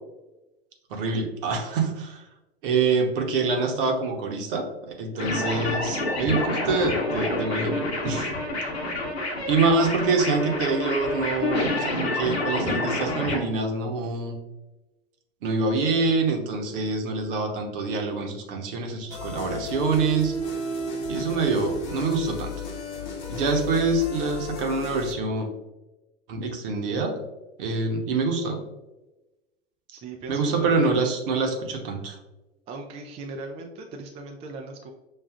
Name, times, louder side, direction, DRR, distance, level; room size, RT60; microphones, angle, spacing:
voice 1, 0.9-2.2 2.6-8.3 9.5-14.3 15.4-20.3 21.1-22.5 23.3-25.5 26.3-27.1 27.6-28.6 30.3-32.2, right 3 dB, 55° right, 2 dB, 1.0 m, -25 dB
sound 1, 5.2-13.4, left 2 dB, 75° left, 0.9 m, -28 dB
sound 2, 19.1-25.1, equal, 50° left, 0.9 m, -33 dB
voice 2, 29.9-30.8 32.7-34.9, right 3 dB, 20° right, 2 dB, 0.4 m, -38 dB
6.4 x 2.4 x 2.4 m, 1.0 s
figure-of-eight pair, 85°, 32 cm